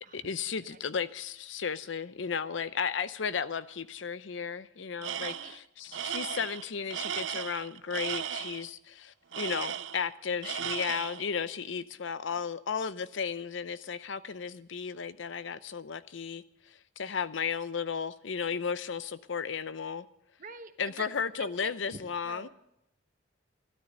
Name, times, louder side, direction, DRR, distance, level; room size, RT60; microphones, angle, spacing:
voice 1, 0.1-5.3 5.8-20.1 20.8-22.5, left 6 dB, 75° left, 0.6 m, -34 dB
Tools, 5.0-5.6 5.9-8.7 9.3-10.1 10.4-11.3, right 9 dB, 70° right, 0.5 m, -36 dB
voice 2, 5.2-5.5 12.3-12.5 20.4-22.5, right 4 dB, 45° right, 1.0 m, -47 dB
12.5 x 12.5 x 6.5 m
head